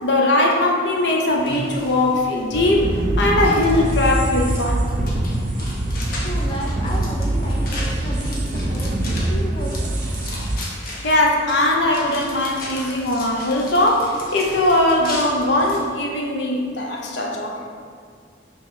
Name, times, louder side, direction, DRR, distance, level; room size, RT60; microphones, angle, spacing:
voice 1, 0.0-4.9 11.0-17.7, left 1 dB, 70° left, 0 dB, 0.8 m, -20 dB
sound 1, 1.3-15.8, left 1 dB, 50° left, 1.1 m, -36 dB
sound 2, 2.5-10.6, right 1 dB, 40° right, 0.5 m, -23 dB
voice 2, 6.2-9.9, equal, 25° left, -3 dB, 0.6 m, -32 dB
6.0 x 3.1 x 5.6 m, 2.1 s
head